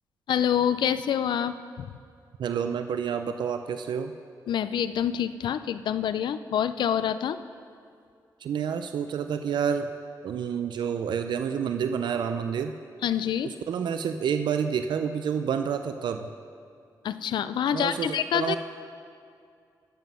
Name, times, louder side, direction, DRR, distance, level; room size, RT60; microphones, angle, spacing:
voice 1, 0.3-1.9 4.5-7.4 13.0-13.5 17.0-18.6, left 9 dB, 85° left, 13 dB, 0.4 m, -27 dB
voice 2, 2.4-4.1 8.4-9.9 10.2-12.7 13.7-16.3 17.7-18.6, right 7 dB, 75° right, 8 dB, 0.4 m, -29 dB
11.5 x 7.3 x 5.5 m, 2.3 s
wide cardioid pair, 130°, 8 cm